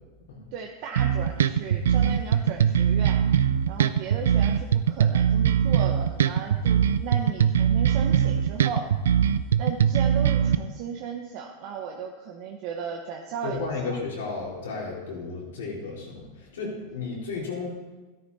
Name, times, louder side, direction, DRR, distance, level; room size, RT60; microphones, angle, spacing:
voice 1, 0.5-3.2 3.7-8.9 9.6-14.0, right 6 dB, 55° right, 2 dB, 1.1 m, -36 dB
sound 1, 1.0-10.6, right 8 dB, 85° right, 0.5 m, -21 dB
voice 2, 13.4-17.7, left 4 dB, 85° left, -3 dB, 4.2 m, -33 dB
13.0 x 10.5 x 4.3 m, 1.2 s
hypercardioid pair, 115°, 0 cm